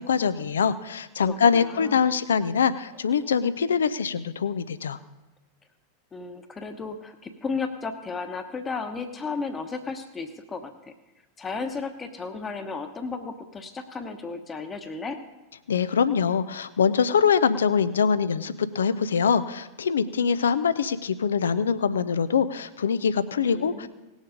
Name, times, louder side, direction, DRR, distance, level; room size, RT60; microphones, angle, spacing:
voice 1, 0.0-5.0 15.7-23.9, left 6 dB, 75° left, 15 dB, 0.6 m, -23 dB
voice 2, 1.2-2.1 6.1-10.9 11.4-15.2 23.5-23.9, left 4 dB, 20° left, 6 dB, 1.1 m, -34 dB
18.0 x 7.2 x 5.2 m, 1.0 s
figure-of-eight pair, 90°, 0 cm